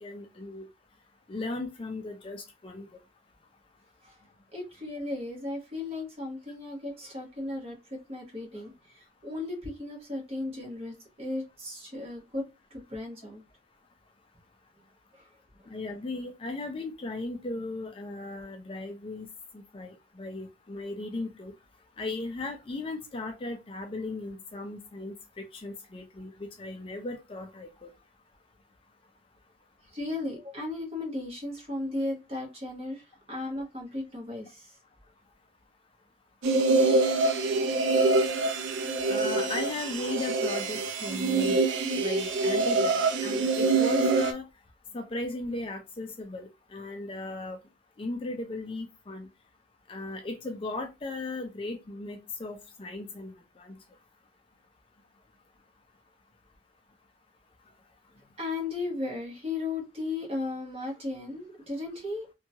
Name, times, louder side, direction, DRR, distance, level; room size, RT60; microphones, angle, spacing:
voice 1, 0.0-0.6 1.3-2.9 15.7-19.3 19.7-21.5 22.0-26.3 26.6-27.9 39.1-41.7 42.0-44.4 44.9-47.6 48.0-49.3 49.9-53.7, left 2 dB, 30° left, 0.3 m, -37 dB
voice 2, 4.5-13.4 15.1-15.3 29.9-34.8 58.4-62.3, left 2 dB, 30° right, 1.0 m, -36 dB
sound 1, 36.4-44.3, right 3 dB, 75° right, 0.4 m, -25 dB
2.8 x 2.2 x 2.7 m
head